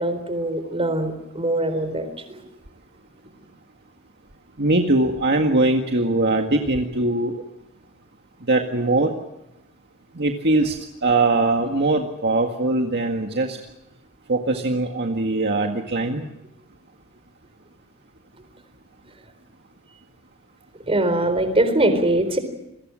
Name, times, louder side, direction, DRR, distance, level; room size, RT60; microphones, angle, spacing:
voice 1, 0.0-2.4 20.9-22.4, right 1 dB, 25° right, 9 dB, 4.2 m, -22 dB
voice 2, 4.6-7.4 8.5-9.1 10.2-10.8 11.0-13.6 14.3-16.3, right 2 dB, 50° right, 3 dB, 1.9 m, -21 dB
28.5 x 22.5 x 6.4 m, 0.87 s
head